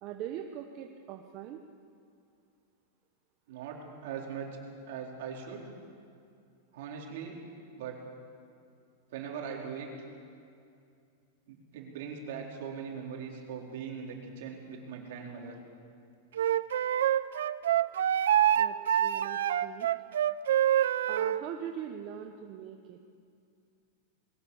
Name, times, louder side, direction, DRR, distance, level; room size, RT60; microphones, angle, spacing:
voice 1, 0.0-1.6 18.6-19.9 21.1-23.0, right 10 dB, 35° right, 4 dB, 1.0 m, -41 dB
voice 2, 3.5-4.5 4.9-5.7 6.7-7.4 7.8-8.0 9.1-9.9 11.5-15.6, right 7 dB, 60° right, -1 dB, 4.2 m, -40 dB
Wind instrument woodwind instrument, 16.4-21.4, right 11 dB, 85° right, 0.6 m, -26 dB
21.0 x 17.5 x 7.2 m, 2.4 s
supercardioid pair, 160°, 0 cm